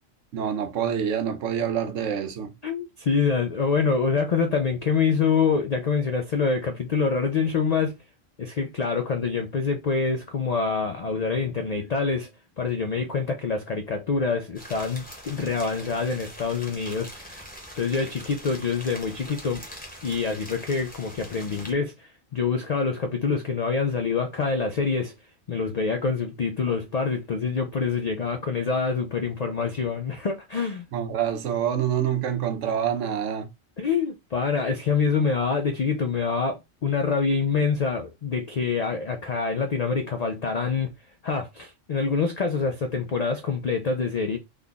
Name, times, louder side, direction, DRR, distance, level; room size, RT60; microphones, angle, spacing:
voice 1, 0.3-2.5 30.9-33.5, right 9 dB, 75° right, 1.0 m, -26 dB
voice 2, 2.6-8.0 8.4-12.3 12.6-17.4 17.8-19.6 20.0-25.1 25.5-30.8 33.8-40.9 41.2-44.4, left 5 dB, 75° left, 0.3 m, -26 dB
sound 1, 14.5-21.7, equal, 10° left, 0.8 m, -43 dB
3.3 x 2.3 x 3.8 m
omnidirectional pair, 1.3 m